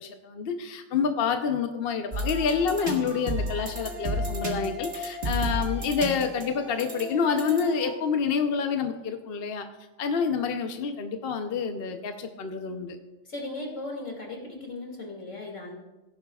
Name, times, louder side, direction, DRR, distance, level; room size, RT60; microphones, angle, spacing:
voice 1, 0.0-9.7 10.0-13.0, left 6 dB, 55° left, 6 dB, 0.9 m, -28 dB
sound 1, 2.1-7.9, equal, 55° right, 1.9 m, -32 dB
voice 2, 13.2-15.7, left 2 dB, 85° left, 0 dB, 2.7 m, -37 dB
16.5 x 11.0 x 2.3 m, 1.1 s
omnidirectional pair, 1.3 m